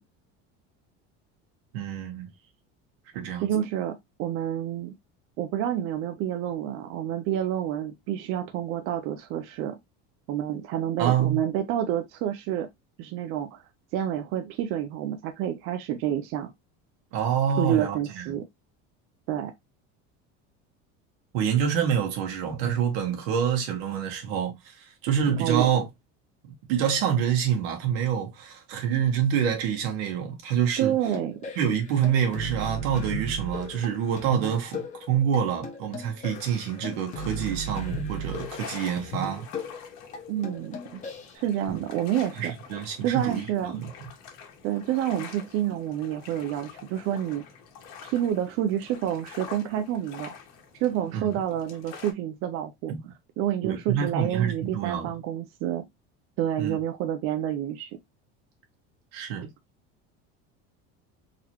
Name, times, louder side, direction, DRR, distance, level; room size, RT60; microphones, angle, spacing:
voice 1, 1.7-2.3 3.1-3.5 11.0-11.4 17.1-18.4 21.3-25.8 26.7-31.0 31.5-39.5 41.7-41.8 42.4-43.9 51.1-51.4 52.9-53.1 53.6-55.1 56.6-56.8 59.1-59.5, right 8 dB, 85° right, 1.6 m, -27 dB
voice 2, 3.4-4.9 5.4-9.8 10.3-12.7 13.0-13.6 13.9-16.5 17.6-18.5 19.3-19.5 25.3-25.7 30.8-31.4 40.3-41.0 41.3-42.5 43.0-43.8 44.6-47.4 48.0-50.3 50.8-52.9 53.4-55.8 56.4-57.9, right 11 dB, 45° right, 0.5 m, -28 dB
sound 1, 31.1-41.3, equal, 25° left, 0.9 m, -37 dB
sound 2, 36.1-52.1, left 7 dB, 60° left, 1.4 m, -47 dB
3.9 x 2.8 x 2.9 m
cardioid pair, 170°, 30 cm